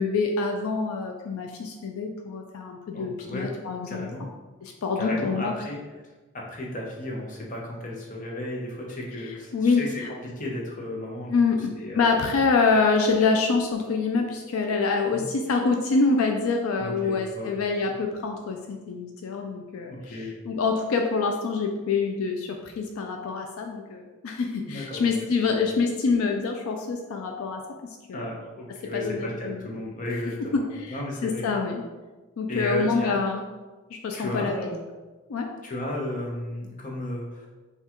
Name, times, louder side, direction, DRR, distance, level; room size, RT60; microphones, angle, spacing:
voice 1, 0.0-4.3 4.6-5.5 9.5-9.8 11.3-20.2 20.5-27.6 28.1-28.3 28.9-29.6 30.5-31.8 32.4-33.4 33.9-34.5 35.3-35.5, left 4 dB, 75° left, 3 dB, 0.4 m, -26 dB
voice 2, 2.9-3.5 3.9-4.3 5.0-5.8 6.3-12.2 15.1-15.3 16.8-17.5 19.9-20.4 24.7-25.1 25.4-25.6 28.1-31.5 32.5-33.1 34.1-34.8 35.6-37.5, left 1 dB, 35° left, -2 dB, 0.7 m, -34 dB
5.6 x 2.3 x 2.9 m, 1.2 s
head